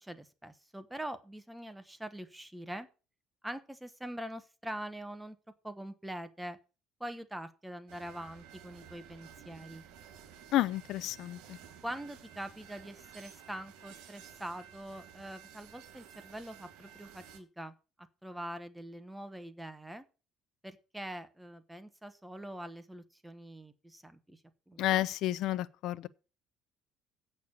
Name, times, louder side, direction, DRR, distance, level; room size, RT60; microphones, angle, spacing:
voice 1, 0.0-2.9 3.4-5.4 5.6-6.6 7.0-9.8 11.8-20.0 20.6-24.4 24.7-25.0, right 1 dB, 5° right, 1.1 m, -44 dB
sound 1, 7.9-17.4, right 9 dB, 80° right, 3.1 m, -54 dB
voice 2, 10.5-11.6 24.8-26.1, left 14 dB, 65° left, 0.5 m, -31 dB
8.3 x 6.6 x 8.4 m
cardioid pair, 135°, 0 cm